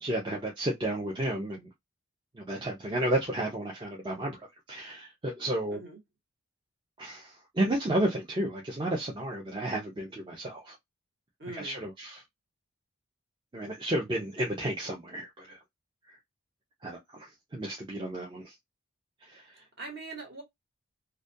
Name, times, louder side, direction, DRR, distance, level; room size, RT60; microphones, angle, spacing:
voice 1, 0.0-1.7 2.4-4.4 4.7-5.8 7.0-10.7 11.5-12.2 13.5-15.6 16.8-18.5 19.3-19.4, right 1 dB, 20° right, 0.4 m, -32 dB
voice 2, 11.4-11.8 19.5-20.4, right 3 dB, 50° right, 1.1 m, -42 dB
2.3 x 2.1 x 2.6 m
head